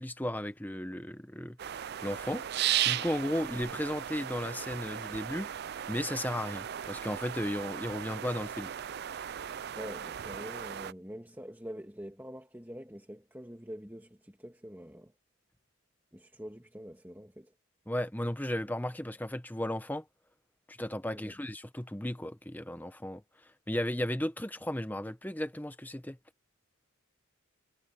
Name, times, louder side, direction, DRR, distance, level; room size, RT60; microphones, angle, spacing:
voice 1, 0.0-2.4 2.8-5.5 5.9-8.7 17.9-20.0 20.7-26.2, left 1 dB, 10° left, 1.0 m, -35 dB
sound 1, 1.6-10.9, right 10 dB, 50° right, 0.4 m, -36 dB
voice 2, 9.8-15.1 16.1-17.5 21.1-21.3, equal, 10° right, 2.2 m, -45 dB
head